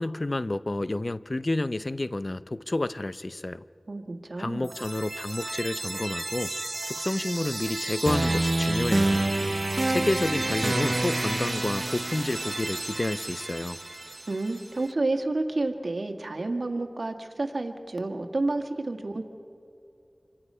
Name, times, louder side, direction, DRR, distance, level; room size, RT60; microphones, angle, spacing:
voice 1, 0.0-3.6 4.4-6.5 6.9-9.3 9.9-13.8, left 2 dB, 50° left, 14 dB, 0.6 m, -30 dB
voice 2, 3.9-4.7 14.3-19.2, right 2 dB, 75° right, 5 dB, 1.7 m, -30 dB
sound 1, 4.6-14.6, right 2 dB, 50° right, 0.5 m, -29 dB
27.5 x 25.0 x 5.6 m, 2.5 s
wide cardioid pair, 40°, 0 cm